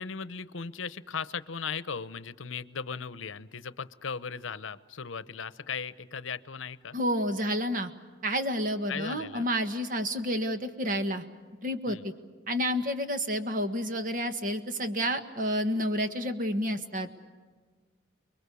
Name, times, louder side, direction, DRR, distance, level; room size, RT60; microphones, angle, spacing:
voice 1, 0.0-7.0 8.9-9.5 11.9-12.1, left 6 dB, 85° left, 16 dB, 0.8 m, -37 dB
voice 2, 6.9-7.9 8.2-11.2 11.6-12.1 12.5-17.2, equal, 45° right, 8 dB, 1.6 m, -30 dB
30.0 x 22.0 x 7.0 m, 1.5 s
head